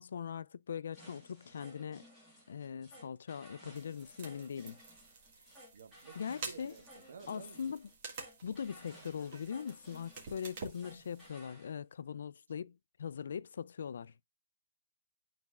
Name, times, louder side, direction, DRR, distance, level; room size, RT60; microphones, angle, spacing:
voice 1, 0.0-2.0 2.5-4.8 6.2-6.8 7.3-7.9 8.4-14.1, left 7 dB, 65° left, 0.3 m, -41 dB
sound 1, 0.9-11.7, equal, ahead, 1.7 m, -58 dB
sound 2, 3.7-11.3, right 4 dB, 35° right, 1.7 m, -50 dB
voice 2, 5.7-7.6, right 5 dB, 60° right, 1.2 m, -53 dB
11.5 x 4.1 x 2.3 m
hypercardioid pair, 180°, 0 cm